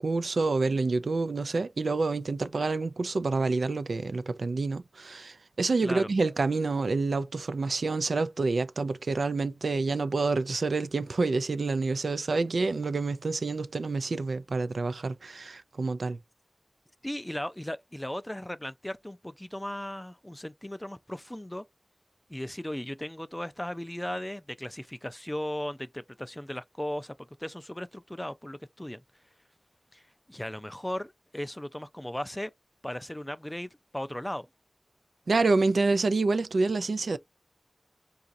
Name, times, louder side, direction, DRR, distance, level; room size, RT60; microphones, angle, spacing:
voice 1, 0.0-16.2 35.3-37.2, right 3 dB, 90° right, 0.3 m, -28 dB
voice 2, 17.0-21.6 22.3-29.0 29.9-30.0 30.3-32.5 32.8-34.5, left 1 dB, 15° left, 0.3 m, -37 dB
4.0 x 2.4 x 2.6 m
wide cardioid pair, 70°, 0 cm